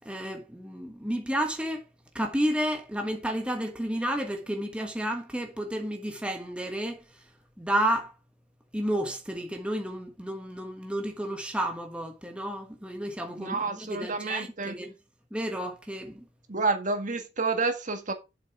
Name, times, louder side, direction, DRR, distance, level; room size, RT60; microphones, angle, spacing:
voice 1, 0.0-1.8 2.1-7.0 7.6-8.1 8.7-14.9 15.3-16.2, right 1 dB, 5° right, 1.4 m, -31 dB
voice 2, 13.4-14.8 16.5-18.1, right 3 dB, 45° right, 1.7 m, -29 dB
7.7 x 6.3 x 4.6 m
head